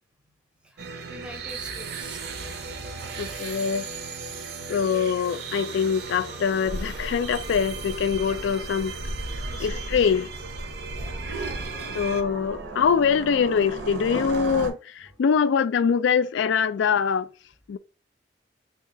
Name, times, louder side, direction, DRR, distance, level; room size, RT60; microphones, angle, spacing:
voice 1, 0.6-2.4 3.3-3.4 4.3-4.5 9.2-9.9 10.9-11.3, equal, 5° right, 0.6 m, -46 dB
sound 1, 0.8-12.2, right 5 dB, 60° right, 0.5 m, -36 dB
voice 2, 3.2-3.9 4.7-9.0 9.6-10.3 11.9-17.3 17.7-17.8, left 6 dB, 85° left, 0.3 m, -23 dB
sound 2, 6.7-14.7, right 1 dB, 85° right, 0.8 m, -36 dB
3.2 x 2.3 x 3.7 m
head